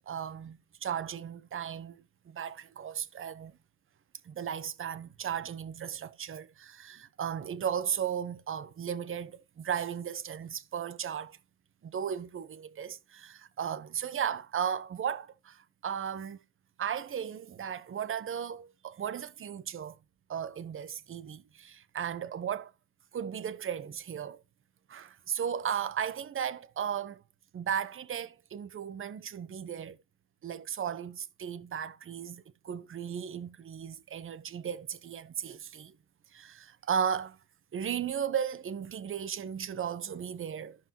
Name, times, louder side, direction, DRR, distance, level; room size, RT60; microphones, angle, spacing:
voice 1, 0.1-3.6 4.2-11.4 11.8-16.4 16.8-20.0 20.3-22.7 23.1-24.4 24.9-27.2 27.5-30.0 30.4-35.9 36.3-37.4 37.7-40.8, right 8 dB, 45° right, 0.9 m, -35 dB
14.0 x 5.5 x 2.9 m
cardioid pair, 90°, 30 cm